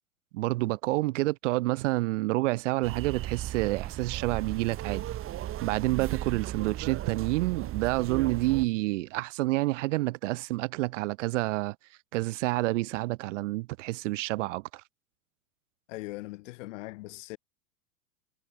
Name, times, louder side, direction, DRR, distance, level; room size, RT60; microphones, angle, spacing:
voice 1, 0.3-5.0 5.6-11.8 12.1-14.8, right 20 dB, 55° right, 1.2 m, -28 dB
sound 1, 2.8-8.7, right 13 dB, 30° right, 1.8 m, -36 dB
voice 2, 15.9-17.4, left 21 dB, 55° left, 4.1 m, -40 dB
hypercardioid pair, 100°, 45 cm